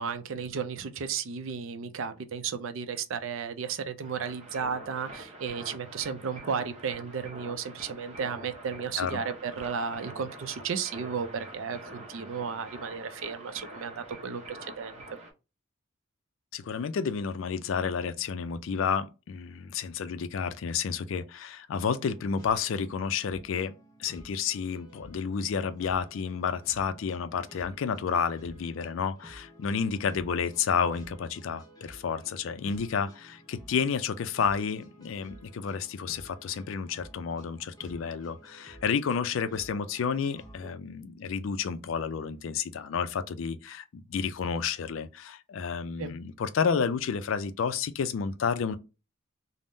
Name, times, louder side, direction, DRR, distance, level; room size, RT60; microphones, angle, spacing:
voice 1, 0.0-14.9 46.0-46.1, right 6 dB, 70° right, 0.4 m, -34 dB
sound 1, 4.0-15.3, right 1 dB, 30° right, 0.7 m, -45 dB
voice 2, 16.5-23.7 24.0-48.8, left 6 dB, 70° left, 0.4 m, -30 dB
sound 2, 22.0-40.8, equal, 20° left, 0.6 m, -53 dB
3.5 x 2.0 x 2.6 m
head